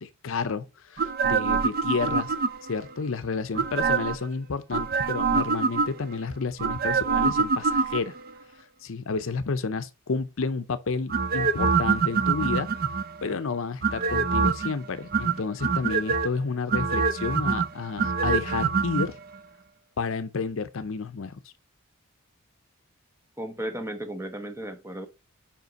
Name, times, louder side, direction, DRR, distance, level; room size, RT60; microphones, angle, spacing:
voice 1, 0.0-2.3 2.7-8.1 8.8-12.7 13.2-19.2 20.0-21.4, left 4 dB, 65° left, 0.6 m, -31 dB
sound 1, 1.0-2.8 3.5-4.3 4.7-6.2 6.6-8.3 11.1-13.2 13.8-14.7 15.1-16.3 16.7-19.1 19.3-19.4, right 5 dB, 45° right, 0.5 m, -25 dB
voice 2, 23.4-25.1, right 1 dB, 10° right, 1.0 m, -34 dB
5.4 x 5.1 x 5.1 m
head